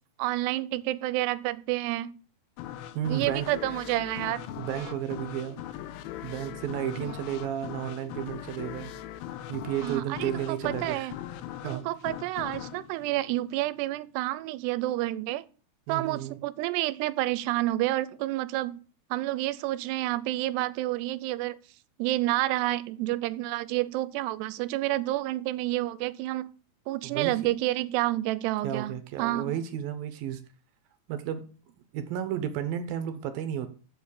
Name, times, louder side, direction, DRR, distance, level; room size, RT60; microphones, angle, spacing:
voice 1, 0.2-2.2 3.1-4.4 4.7-4.8 7.0-7.1 9.8-11.1 11.6-15.5 15.9-18.8 19.1-21.6 22.0-26.5 26.9-29.5, right 16 dB, 85° right, 2.7 m, -29 dB
sound 1, 2.6-14.0, left 12 dB, 80° left, 2.3 m, -40 dB
voice 2, 2.9-3.6 4.5-5.6 6.2-8.9 9.5-11.1 11.6-11.8 15.9-16.4 27.0-27.4 28.6-30.4 31.1-31.5 31.9-33.7, right 10 dB, 70° right, 2.5 m, -32 dB
7.7 x 7.1 x 7.1 m
omnidirectional pair, 4.7 m